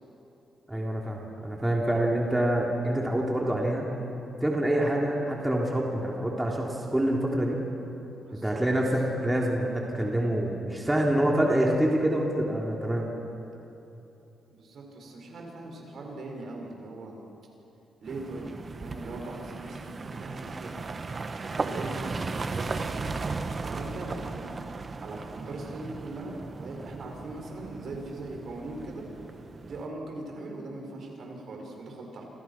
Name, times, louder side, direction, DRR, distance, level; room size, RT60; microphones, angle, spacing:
voice 1, 0.7-3.9 4.4-7.6 8.4-13.1, right 1 dB, 10° right, -2 dB, 3.6 m, -26 dB
voice 2, 8.2-8.6 11.1-11.2 14.5-17.2 18.0-18.5 18.8-20.8 21.4-23.2 23.6-24.6 25.0-29.0 29.6-32.2, right 2 dB, 60° right, 0 dB, 6.7 m, -40 dB
sound 1, 18.1-29.9, right 3 dB, 35° right, 1.4 m, -36 dB
29.0 x 27.5 x 6.2 m, 2.9 s
cardioid pair, 90°, 0 cm